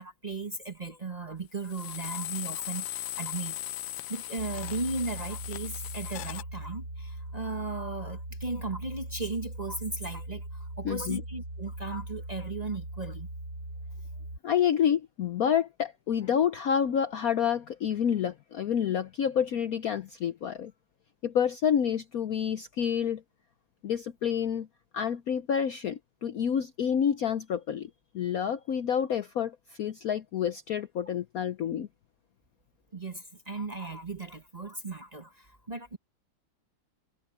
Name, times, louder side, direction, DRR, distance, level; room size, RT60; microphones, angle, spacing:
voice 1, 0.0-3.6 4.1-13.3 32.9-36.0, right 3 dB, 25° right, 1.1 m, -36 dB
sound 1, 1.6-6.4, left 14 dB, 80° left, 1.3 m, -38 dB
sound 2, 4.4-14.4, right 1 dB, 55° right, 4.0 m, -40 dB
voice 2, 10.8-11.2 14.4-20.7 21.2-23.2 23.8-24.7 24.9-27.9 28.1-31.9, left 8 dB, 65° left, 0.9 m, -28 dB
omnidirectional pair, 2.2 m